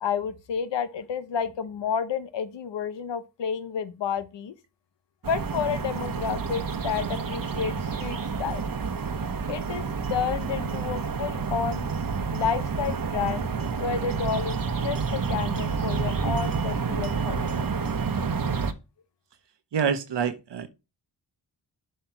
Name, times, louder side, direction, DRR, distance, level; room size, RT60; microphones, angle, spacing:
voice 1, 0.0-4.5 5.2-8.6 9.5-9.8 10.1-11.9 12.3-13.5 13.8-17.4, left 7 dB, 90° left, 0.9 m, -30 dB
sound 1, 5.2-18.7, right 5 dB, 50° right, 1.0 m, -29 dB
voice 2, 19.7-20.7, right 7 dB, 80° right, 1.0 m, -26 dB
7.5 x 3.2 x 5.9 m
cardioid pair, 55°, 42 cm